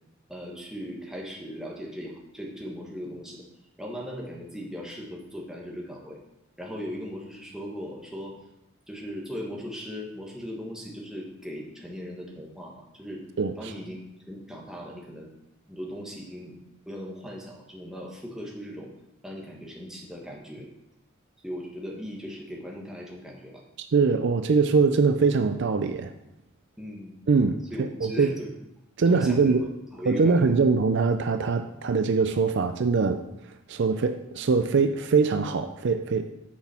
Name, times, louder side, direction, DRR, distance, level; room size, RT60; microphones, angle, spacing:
voice 1, 0.3-3.4 3.8-6.2 6.6-8.4 8.9-13.2 13.6-14.0 14.3-15.3 15.7-16.6 16.9-18.9 19.2-20.7 21.4-23.6 26.8-27.1 27.7-28.5 29.1-29.7 29.9-30.6, equal, 5° right, -2 dB, 1.4 m, -38 dB
voice 2, 13.4-13.7 23.8-26.1 27.3-27.6 28.0-28.3 29.0-29.6 30.1-33.2 33.7-36.3, right 4 dB, 55° right, 8 dB, 0.4 m, -22 dB
8.6 x 6.1 x 4.3 m, 0.87 s
head